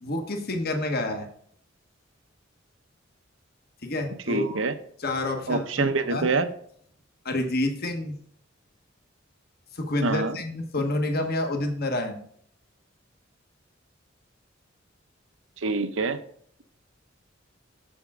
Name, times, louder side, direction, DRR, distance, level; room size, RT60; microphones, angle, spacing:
voice 1, 0.0-1.3 3.8-4.6 5.0-6.3 7.2-8.2 9.7-12.2, left 2 dB, 50° left, 4 dB, 1.4 m, -28 dB
voice 2, 4.3-4.7 5.5-6.5 10.0-10.3 15.6-16.2, right 3 dB, 75° right, 9 dB, 0.8 m, -25 dB
7.2 x 7.1 x 3.7 m, 0.62 s
head